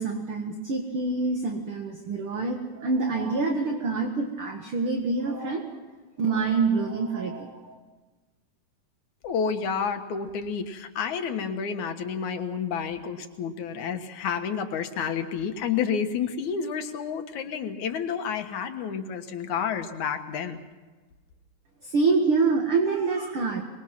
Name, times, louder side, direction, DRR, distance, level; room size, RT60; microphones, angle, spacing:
voice 1, 0.0-5.8 6.2-7.8 21.8-23.6, right 4 dB, 50° right, 2 dB, 2.5 m, -26 dB
voice 2, 9.2-20.6, left 7 dB, 75° left, 6 dB, 2.8 m, -30 dB
25.5 x 21.5 x 6.0 m, 1.3 s
omnidirectional pair, 3.5 m